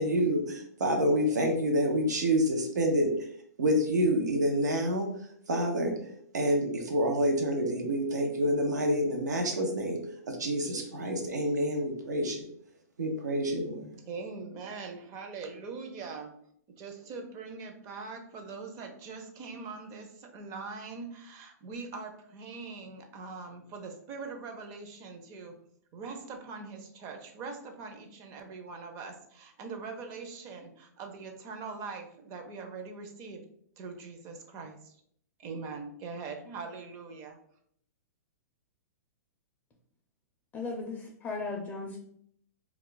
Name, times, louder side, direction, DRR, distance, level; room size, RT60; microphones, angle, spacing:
voice 1, 0.0-3.1 3.6-5.1 5.5-5.9 6.3-10.0 10.3-12.4 13.0-13.9, equal, 85° right, 2 dB, 0.7 m, -27 dB
voice 2, 14.0-16.4 16.7-25.5 25.9-33.4 33.8-34.9 35.4-37.4, right 4 dB, 35° right, 4 dB, 0.6 m, -42 dB
voice 3, 40.5-42.0, left 3 dB, 20° left, 0 dB, 0.4 m, -36 dB
2.3 x 2.2 x 3.8 m, 0.67 s
hypercardioid pair, 125°, 9 cm